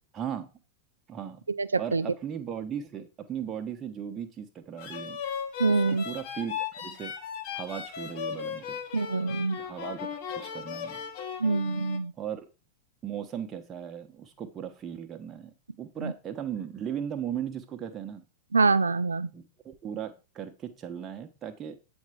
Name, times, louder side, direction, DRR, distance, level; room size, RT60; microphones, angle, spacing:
voice 1, 0.1-0.5 1.1-1.4 1.8-5.2 5.7-7.1 7.5-8.8 9.6-11.0 12.2-12.5 13.0-15.5 15.8-18.3 19.3-21.8, right 9 dB, 25° right, 1.0 m, -37 dB
voice 2, 1.6-2.0 5.6-6.0 8.9-9.6 11.4-12.1 16.0-16.1 18.5-19.3, right 3 dB, 75° right, 0.4 m, -25 dB
sound 1, 4.8-12.0, left 7 dB, 45° left, 1.2 m, -37 dB
8.4 x 4.4 x 4.9 m
figure-of-eight pair, 90°, 0 cm